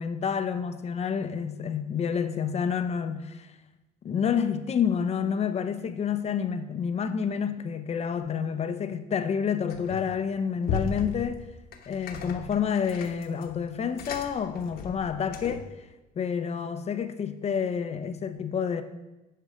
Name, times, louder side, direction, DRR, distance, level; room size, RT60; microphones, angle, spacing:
voice 1, 0.0-3.5 4.0-11.4 11.9-15.6 16.2-18.8, left 7 dB, 40° left, 0.7 m, -29 dB
sound 1, 9.7-10.2 10.6-15.7, left 5 dB, 65° left, 1.1 m, -36 dB
10.0 x 5.5 x 5.0 m
cardioid pair, 110°, 17 cm